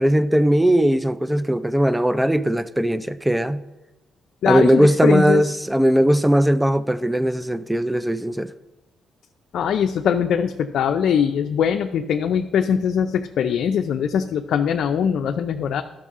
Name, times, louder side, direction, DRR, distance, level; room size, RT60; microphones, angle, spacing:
voice 1, 0.0-3.6 4.4-8.5, right 1 dB, 5° right, 0.4 m, -19 dB
voice 2, 4.4-5.4 9.5-15.8, left 8 dB, 70° left, 0.5 m, -21 dB
12.0 x 6.0 x 3.7 m
cardioid pair, 90°, 0 cm